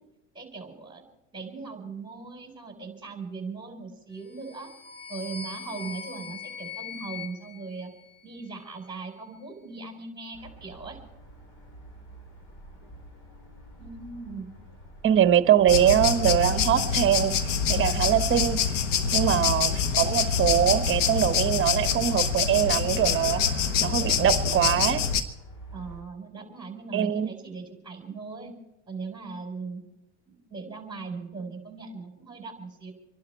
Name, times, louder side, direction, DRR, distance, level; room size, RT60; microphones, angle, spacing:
voice 1, 0.3-1.0 1.3-4.7 5.1-7.9 8.2-11.0 13.8-14.5 19.2-19.5 25.7-28.5 28.9-29.8 30.2-32.9, right 4 dB, 15° right, 3 dB, 4.8 m, -39 dB
sound 1, 4.3-8.6, left 6 dB, 30° left, 1.3 m, -41 dB
sound 2, 10.3-26.0, right 1 dB, 55° left, 6.8 m, -49 dB
voice 2, 15.0-17.3 17.7-18.6 19.1-23.4 23.8-25.0 26.9-27.3, right 10 dB, 35° right, 12 dB, 1.1 m, -23 dB
sound 3, 15.7-25.2, left 6 dB, 90° left, 1.4 m, -25 dB
27.0 x 11.5 x 4.6 m, 0.89 s
supercardioid pair, 100°, 36 cm